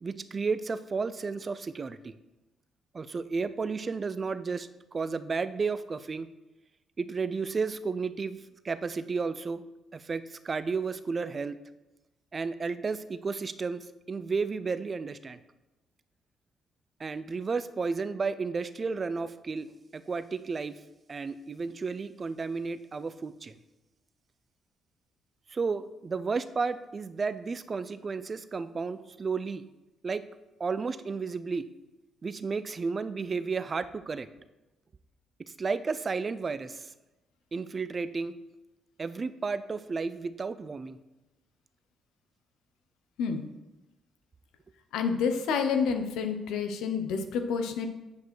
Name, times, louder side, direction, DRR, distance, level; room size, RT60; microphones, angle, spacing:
voice 1, 0.0-2.1 2.9-6.3 7.0-8.4 8.6-9.6 9.9-11.6 12.3-15.4 17.0-19.7 19.9-20.7 21.1-23.5 25.5-29.6 30.0-30.2 30.6-31.6 32.2-34.3 35.6-36.9 37.5-38.3 39.0-41.0, right 4 dB, 35° right, 13 dB, 0.5 m, -32 dB
voice 2, 44.9-47.9, left 6 dB, 90° left, 7 dB, 0.9 m, -29 dB
8.4 x 5.2 x 6.3 m, 1.0 s
cardioid pair, 90°, 0 cm